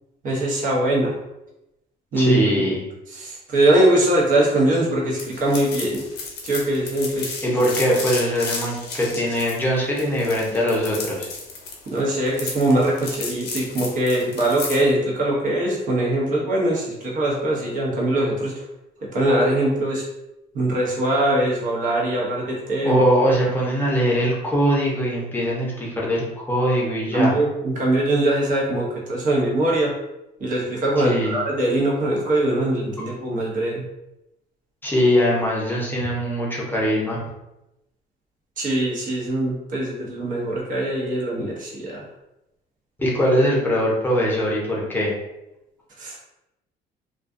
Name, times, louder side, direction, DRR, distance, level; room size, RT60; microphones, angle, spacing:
voice 1, 0.2-1.2 2.1-2.4 3.1-6.0 6.4-7.4 11.9-18.7 19.0-20.0 20.5-23.0 23.6-23.7 27.1-29.9 30.4-33.8 38.6-42.1 46.0-46.2, right 1 dB, 50° right, -3 dB, 0.9 m, -22 dB
voice 2, 2.2-2.8 7.4-11.3 22.8-27.3 31.0-31.4 34.8-37.2 43.0-45.1, equal, 10° left, -4 dB, 0.7 m, -21 dB
sound 1, 5.2-14.9, left 4 dB, 75° left, 0.7 m, -33 dB
2.4 x 2.3 x 2.5 m, 0.91 s
cardioid pair, 110°, 17 cm